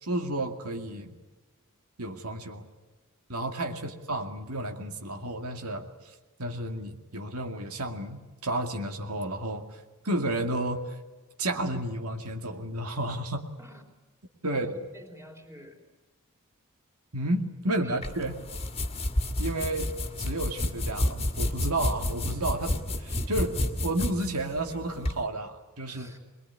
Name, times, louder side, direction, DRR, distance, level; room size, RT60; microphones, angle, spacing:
voice 1, 0.0-1.1 2.0-2.6 3.3-5.9 6.4-9.6 10.0-11.0 11.4-13.5 14.4-14.7 17.1-18.3 19.4-19.9 20.2-23.5 23.8-26.1, right 1 dB, 85° right, 4 dB, 2.3 m, -31 dB
voice 2, 14.5-15.8 17.8-18.0 25.9-26.2, equal, 10° right, 4 dB, 3.8 m, -50 dB
sound 1, 18.0-25.2, left 1 dB, 30° left, 1.8 m, -30 dB
23.0 x 22.0 x 9.7 m, 1.2 s
head